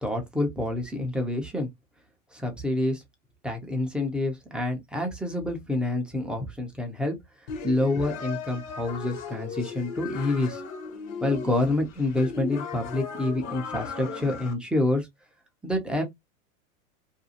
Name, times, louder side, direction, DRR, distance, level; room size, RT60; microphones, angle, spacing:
voice 1, 0.0-1.7 2.3-3.0 3.4-7.2 7.6-10.6 11.2-15.1 15.6-16.0, left 2 dB, ahead, 0.4 m, -27 dB
sound 1, 7.5-14.5, left 5 dB, 40° left, 0.7 m, -37 dB
2.5 x 2.3 x 2.7 m
hypercardioid pair, 120°, 42 cm